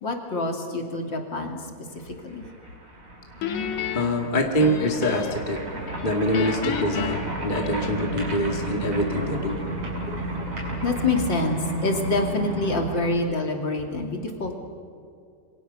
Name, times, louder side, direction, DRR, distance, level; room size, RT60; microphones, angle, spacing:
voice 1, 0.0-1.6 2.0-2.4 10.8-14.6, left 2 dB, 35° left, 2 dB, 3.1 m, -26 dB
sound 1, 2.0-2.1 2.3-13.2, right 1 dB, 20° right, 3.3 m, -33 dB
Guitar, 3.4-5.6 5.9-8.2, left 8 dB, 65° left, 2.8 m, -33 dB
voice 2, 3.9-5.6 6.0-9.6 10.1-10.2, equal, 20° left, 2 dB, 1.7 m, -25 dB
sound 2, 5.7-11.1, right 1 dB, 50° right, 7.0 m, -40 dB
27.5 x 24.5 x 6.9 m, 2.5 s
omnidirectional pair, 3.8 m